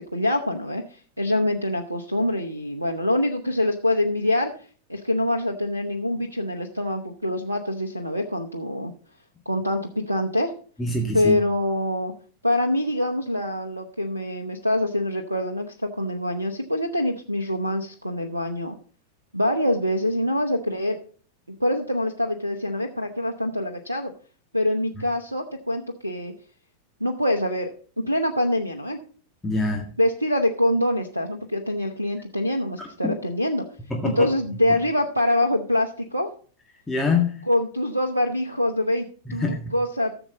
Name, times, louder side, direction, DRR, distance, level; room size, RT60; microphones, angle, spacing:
voice 1, 0.1-4.5 4.9-8.9 9.5-10.5 11.1-12.1 12.4-18.7 19.3-21.0 21.6-24.1 24.5-26.3 27.0-27.7 28.1-29.0 30.0-33.6 34.0-36.3 37.5-40.2, left 1 dB, 85° right, 5 dB, 0.8 m, -25 dB
voice 2, 10.8-11.3 29.4-29.9 33.0-33.1 33.9-34.3 36.9-37.4 39.3-39.6, left 3 dB, 10° left, 0 dB, 1.8 m, -24 dB
14.5 x 7.1 x 4.1 m, 0.43 s
figure-of-eight pair, 90°, 0 cm